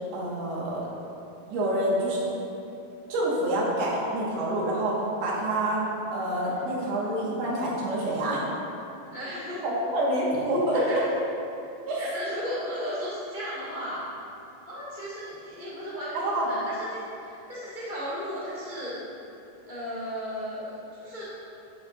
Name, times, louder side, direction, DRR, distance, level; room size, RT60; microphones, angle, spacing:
voice 1, 0.1-0.9 1.5-2.2 3.1-5.8 6.1-8.4 9.6-11.0 11.9-12.0 16.1-16.4, right 1 dB, 85° right, -5 dB, 3.5 m, -27 dB
voice 2, 9.1-9.6 10.7-11.2 12.0-14.0 14.6-19.0 19.6-21.2, equal, 85° left, -9 dB, 0.4 m, -35 dB
11.0 x 8.1 x 2.5 m, 2.8 s
omnidirectional pair, 4.5 m